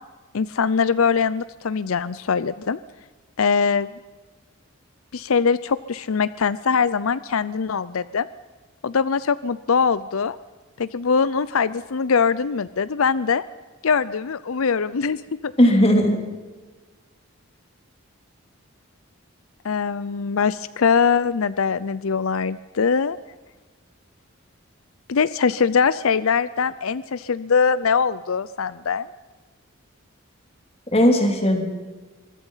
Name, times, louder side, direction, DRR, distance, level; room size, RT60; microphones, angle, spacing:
voice 1, 0.3-2.8 3.4-3.9 5.1-8.3 8.8-10.4 10.8-13.4 13.8-15.5 19.6-23.2 25.1-29.1, left 5 dB, 75° left, 17 dB, 0.6 m, -22 dB
voice 2, 15.6-16.2 30.9-31.6, equal, 30° left, 4 dB, 3.2 m, -17 dB
25.0 x 22.0 x 5.7 m, 1.3 s
head